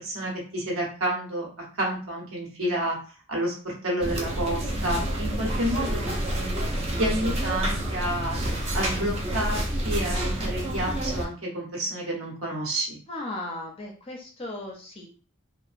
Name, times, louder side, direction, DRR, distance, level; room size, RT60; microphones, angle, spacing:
voice 1, 0.0-1.5 1.8-3.0 3.3-6.6 7.0-8.4 8.7-13.0, right 1 dB, 80° right, -2 dB, 1.0 m, -29 dB
sound 1, 4.0-11.3, right 1 dB, 30° right, 0.4 m, -28 dB
voice 2, 13.1-15.1, left 2 dB, 25° left, 0 dB, 0.5 m, -36 dB
2.8 x 2.0 x 2.5 m, 0.39 s
head